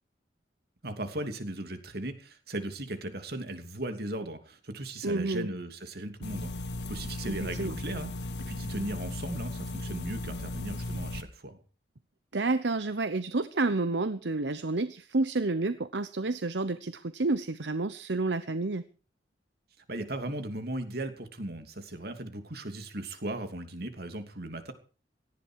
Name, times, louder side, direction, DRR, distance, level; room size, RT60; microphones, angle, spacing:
voice 1, 0.8-6.5 6.9-11.6 19.9-24.7, right 1 dB, 60° right, 8 dB, 2.9 m, -37 dB
voice 2, 5.0-5.5 7.3-7.8 12.3-18.8, right 3 dB, 75° right, 13 dB, 0.9 m, -30 dB
sound 1, 6.2-11.2, left 2 dB, 75° left, 1.5 m, -36 dB
18.0 x 14.5 x 4.7 m, 0.38 s
head